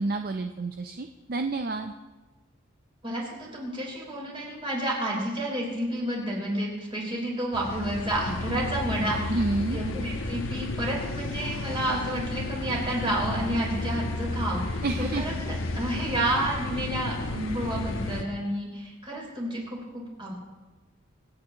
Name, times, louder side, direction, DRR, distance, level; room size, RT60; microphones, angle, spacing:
voice 1, 0.0-1.9 9.3-9.8 14.8-15.2, right 2 dB, 45° right, 6 dB, 0.5 m, -29 dB
voice 2, 3.0-9.4 9.7-20.3, right 1 dB, 25° right, -3 dB, 3.8 m, -30 dB
sound 1, 7.5-18.2, left 2 dB, 90° left, 1.1 m, -32 dB
25.5 x 8.7 x 2.9 m, 1.2 s
head